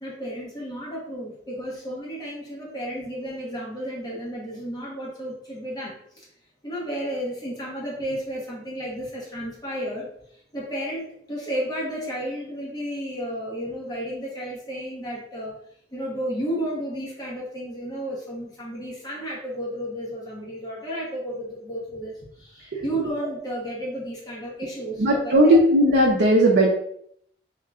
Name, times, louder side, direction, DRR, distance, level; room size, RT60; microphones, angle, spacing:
voice 1, 0.0-6.3 6.6-10.1 10.5-15.6 15.9-25.6, equal, 20° left, -5 dB, 0.9 m, -32 dB
voice 2, 25.0-26.7, right 1 dB, 65° right, -2 dB, 0.6 m, -17 dB
3.7 x 2.2 x 3.6 m, 0.69 s
head